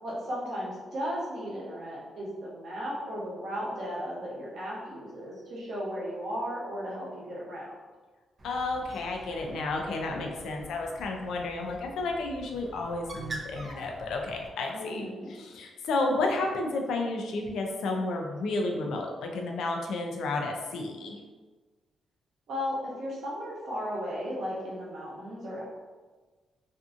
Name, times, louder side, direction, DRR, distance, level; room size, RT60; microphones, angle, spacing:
voice 1, 0.0-7.7 14.7-15.3 22.5-25.6, equal, 60° right, -5 dB, 0.8 m, -35 dB
voice 2, 8.4-21.2, left 2 dB, 85° left, 2 dB, 0.4 m, -32 dB
Bird, 8.4-14.5, right 1 dB, 30° right, 0.3 m, -45 dB
2.6 x 2.5 x 2.4 m, 1.3 s
cardioid pair, 145°, 0 cm